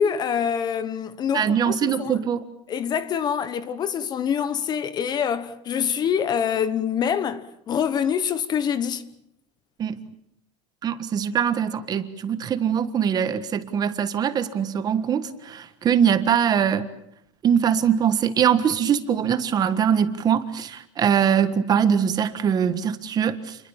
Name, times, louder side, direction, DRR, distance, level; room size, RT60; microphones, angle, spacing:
voice 1, 0.0-2.3 2.7-9.1, left 8 dB, 25° left, 1.2 m, -25 dB
voice 2, 1.3-2.4 9.8-10.0 10.8-16.9 17.4-23.6, right 8 dB, 25° right, 1.5 m, -22 dB
29.0 x 22.5 x 7.3 m
supercardioid pair, 155°, 16 cm